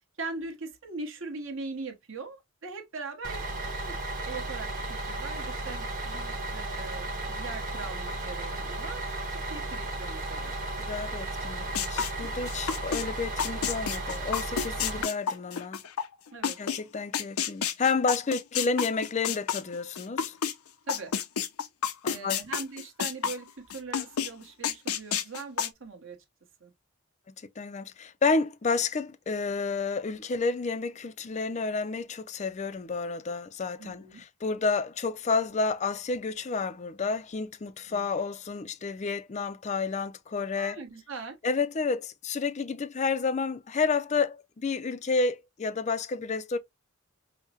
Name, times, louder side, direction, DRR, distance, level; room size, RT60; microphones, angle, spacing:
voice 1, 0.2-3.9 4.2-10.5 15.0-15.1 16.3-16.5 20.9-21.1 22.0-26.2 26.6-26.7 33.8-34.2 37.9-38.1 40.6-41.4, right 3 dB, 60° right, 1.2 m, -41 dB
Bus, 3.2-15.0, right 2 dB, 40° right, 1.1 m, -34 dB
voice 2, 10.8-15.8 16.6-20.4 22.0-22.4 27.6-40.8 41.4-46.6, left 4 dB, 30° left, 0.4 m, -30 dB
sound 1, 11.7-13.0 13.4-16.8 17.1-20.5 20.9-23.4 23.7-24.3 24.6-25.7, left 7 dB, 85° left, 0.5 m, -29 dB
5.4 x 2.1 x 2.9 m
head